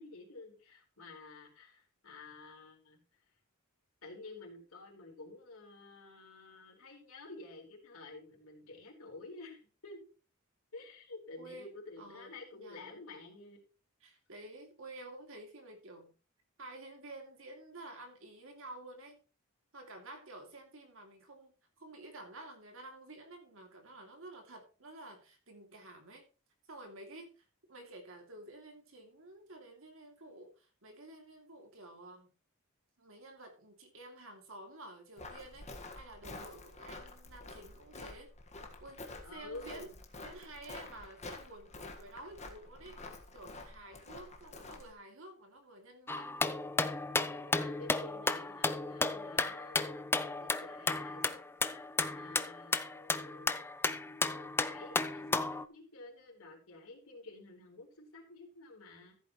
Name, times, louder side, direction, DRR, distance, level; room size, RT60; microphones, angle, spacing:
voice 1, 0.0-3.0 4.0-10.0 10.7-13.6 39.2-40.0 47.1-51.4 51.7-51.8 52.1-53.5 54.0-59.1, left 3 dB, 80° left, 0 dB, 4.1 m, -51 dB
voice 2, 11.4-11.7 12.0-13.0 14.0-16.1 16.6-19.2 19.7-21.5 21.8-26.2 26.7-32.3 33.0-38.3 38.8-39.9 40.2-46.5, right 2 dB, 65° right, 4 dB, 2.6 m, -51 dB
Walk footsteps, 35.2-44.9, left 2 dB, 30° left, 1.6 m, -49 dB
sound 1, 46.1-55.6, left 3 dB, 10° left, 0.4 m, -34 dB
14.5 x 8.2 x 3.1 m, 0.35 s
head